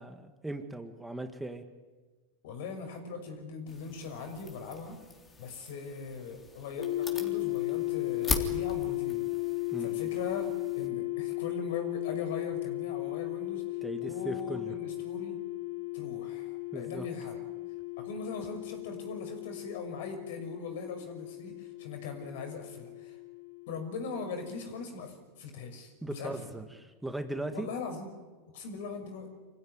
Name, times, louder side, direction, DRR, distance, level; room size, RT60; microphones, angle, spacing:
voice 1, 0.0-1.6 9.7-10.0 13.8-14.7 16.7-17.1 26.0-27.7, right 1 dB, 5° right, 7 dB, 1.9 m, -38 dB
voice 2, 2.4-5.0 5.4-9.2 9.8-13.6 14.0-15.4 15.9-17.4 18.0-23.2 23.7-26.5 27.5-28.1 28.5-29.3, left 4 dB, 70° left, 6 dB, 5.9 m, -40 dB
sound 1, 3.7-10.9, left 4 dB, 25° left, 3.5 m, -40 dB
sound 2, 6.8-24.7, left 23 dB, 90° left, 4.6 m, -36 dB
25.5 x 16.0 x 9.6 m, 1.3 s
hypercardioid pair, 110°, 0 cm